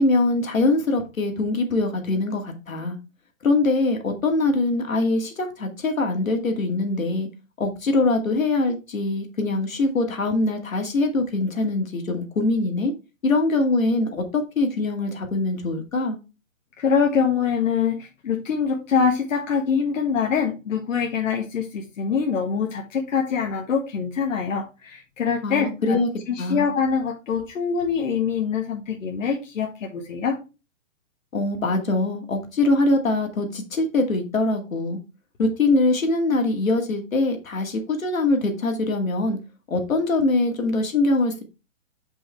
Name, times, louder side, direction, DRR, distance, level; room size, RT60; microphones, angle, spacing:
voice 1, 0.0-3.0 3.4-7.3 7.6-12.9 13.2-16.2 25.4-26.1 26.4-26.7 31.3-35.0 35.4-39.4 39.7-41.4, left 2 dB, 90° left, 2.4 m, -23 dB
voice 2, 16.8-26.0 26.3-30.4, left 6 dB, 70° left, 1.5 m, -24 dB
5.4 x 5.4 x 4.5 m
hypercardioid pair, 145°, 39 cm